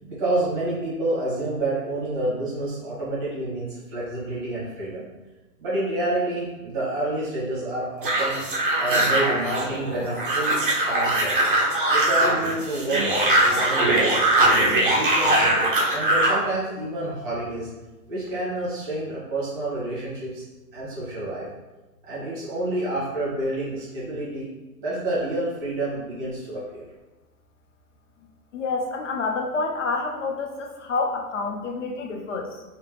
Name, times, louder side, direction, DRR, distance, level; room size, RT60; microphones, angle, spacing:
voice 1, 0.0-5.0 5.6-8.4 8.8-11.4 11.9-14.3 14.7-15.5 15.9-17.7 18.1-20.4 20.7-21.5 22.1-24.5 24.8-26.8, right 2 dB, 10° right, -10 dB, 1.0 m, -28 dB
sound 1, 8.0-16.4, right 1 dB, 35° right, 0.5 m, -21 dB
voice 2, 28.5-32.6, left 3 dB, 55° left, 2 dB, 0.5 m, -28 dB
3.2 x 2.9 x 3.2 m, 1.1 s
hypercardioid pair, 175°, 46 cm